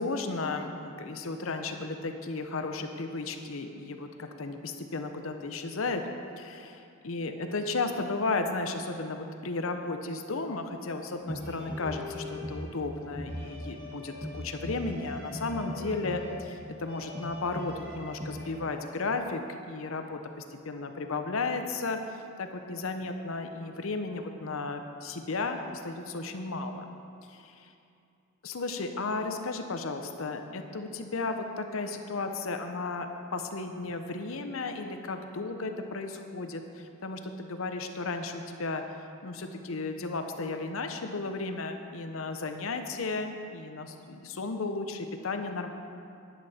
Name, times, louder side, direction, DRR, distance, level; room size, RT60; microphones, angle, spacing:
voice 1, 0.0-6.0 6.4-22.0 22.4-26.9 27.3-27.7 28.4-38.8 39.2-45.7, left 3 dB, 75° left, 6 dB, 0.8 m, -34 dB
sound 1, 11.2-18.6, left 1 dB, 50° right, 1.9 m, -40 dB
9.8 x 9.2 x 4.3 m, 2.6 s
head